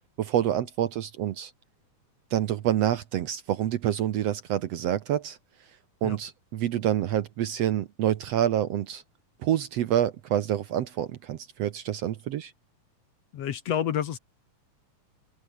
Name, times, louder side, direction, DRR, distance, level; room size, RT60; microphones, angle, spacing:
voice 1, 0.2-1.5 2.3-5.4 6.0-9.0 9.4-12.5, right 11 dB, 65° right, 1.8 m, -27 dB
voice 2, 13.3-14.2, left 9 dB, 60° left, 2.1 m, -29 dB
open air
omnidirectional pair, 3.7 m